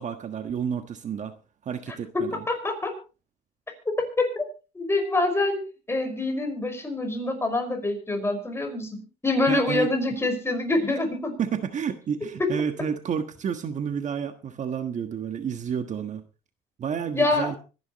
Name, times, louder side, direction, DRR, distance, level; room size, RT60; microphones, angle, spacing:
voice 1, 0.0-1.3 1.6-2.4 9.5-9.9 11.4-16.2 16.8-17.6, right 7 dB, 45° right, 8 dB, 1.4 m, -30 dB
voice 2, 2.5-2.9 4.2-4.4 4.7-5.6 5.9-11.4 17.1-17.5, left 2 dB, 15° left, 5 dB, 5.5 m, -25 dB
25.0 x 11.0 x 3.1 m, 0.33 s
cardioid pair, 110°, 17 cm